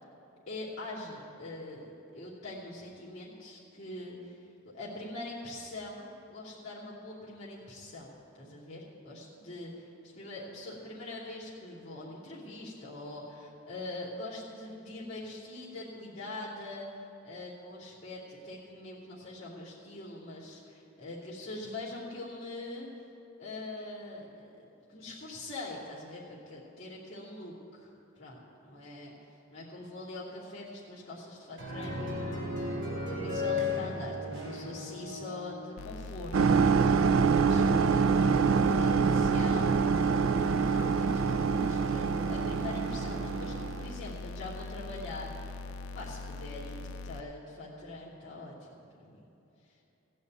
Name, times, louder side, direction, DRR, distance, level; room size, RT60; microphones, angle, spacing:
voice 1, 0.5-22.9 23.4-24.5 24.9-29.1 29.5-37.1 37.4-40.3 40.7-45.6 45.9-49.2 49.6-49.8, left 2 dB, 35° left, -12 dB, 2.7 m, -43 dB
sound 1, 31.6-35.7, left 3 dB, 55° right, 3.7 m, -35 dB
sound 2, 35.8-47.2, left 3 dB, 90° left, 0.4 m, -42 dB
sound 3, 36.3-43.9, right 5 dB, 75° right, 0.4 m, -26 dB
16.5 x 5.5 x 9.1 m, 2.9 s
head